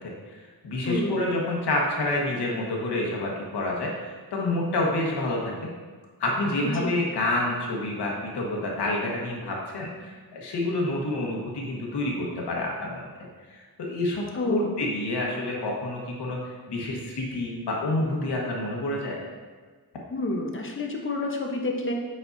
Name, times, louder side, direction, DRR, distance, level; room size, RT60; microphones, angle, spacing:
voice 1, 0.0-5.7 6.2-13.1 13.5-19.2, left 2 dB, 85° left, -2 dB, 1.4 m, -28 dB
voice 2, 0.8-1.2 6.6-6.9 14.3-14.7 20.1-21.9, left 1 dB, 30° left, 1 dB, 0.9 m, -29 dB
7.8 x 5.3 x 2.6 m, 1.4 s
wide cardioid pair, 125°, 39 cm